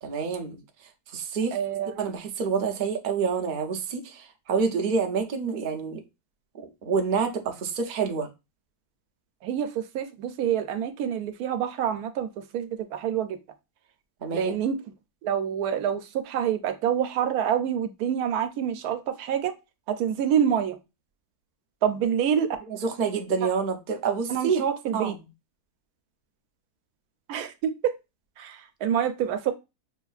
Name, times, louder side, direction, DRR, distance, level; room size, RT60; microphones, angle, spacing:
voice 1, 0.0-0.6 1.1-1.6 2.0-6.0 6.5-8.3 14.2-14.5 22.7-24.6 24.9-25.2, right 5 dB, 60° right, 0.5 m, -27 dB
voice 2, 1.5-2.0 9.4-13.4 14.3-14.8 15.2-19.5 19.9-20.8 21.8-22.6 24.3-25.2 27.3-27.9 28.4-29.5, right 9 dB, 75° right, 1.1 m, -27 dB
5.5 x 2.5 x 2.4 m
omnidirectional pair, 1.6 m